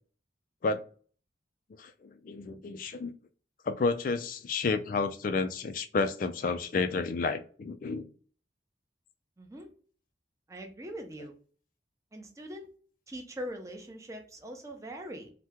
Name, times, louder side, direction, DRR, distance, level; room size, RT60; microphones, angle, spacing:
voice 1, 1.8-3.1 3.7-8.1, left 4 dB, 50° left, 0.3 m, -31 dB
voice 2, 9.4-9.7 10.5-11.3 12.1-12.7 13.1-15.3, equal, 15° right, 0.5 m, -42 dB
2.8 x 2.1 x 3.5 m
head